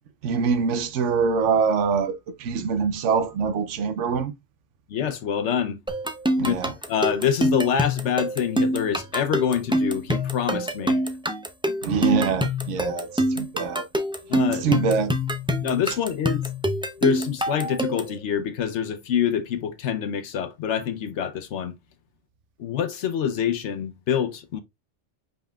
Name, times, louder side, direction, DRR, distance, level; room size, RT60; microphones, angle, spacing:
voice 1, 0.2-4.3 6.4-6.7 11.8-13.1 13.3-13.9 14.6-15.1, right 5 dB, 90° right, 1.0 m, -24 dB
voice 2, 4.9-5.8 6.4-6.6 6.9-11.0 14.3-14.8 15.6-16.4 17.0-21.7 22.6-24.6, left 8 dB, 80° left, 0.9 m, -26 dB
sound 1, 5.9-18.2, equal, 10° right, 0.3 m, -26 dB
5.5 x 4.1 x 2.3 m
omnidirectional pair, 1.2 m